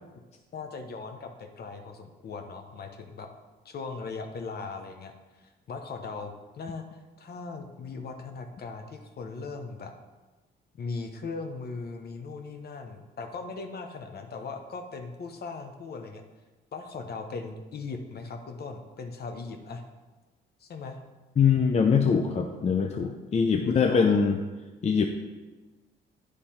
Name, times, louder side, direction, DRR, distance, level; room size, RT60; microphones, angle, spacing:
voice 1, 0.5-3.3 3.6-5.1 5.4-6.9 7.2-9.9 10.7-16.2 16.7-19.8 20.6-21.0 23.6-24.2, left 4 dB, 55° left, 5 dB, 0.9 m, -38 dB
voice 2, 21.4-24.4 24.8-25.1, left 6 dB, 35° left, 4 dB, 0.5 m, -23 dB
9.2 x 3.3 x 4.3 m, 1.2 s
cardioid pair, 90°, 20 cm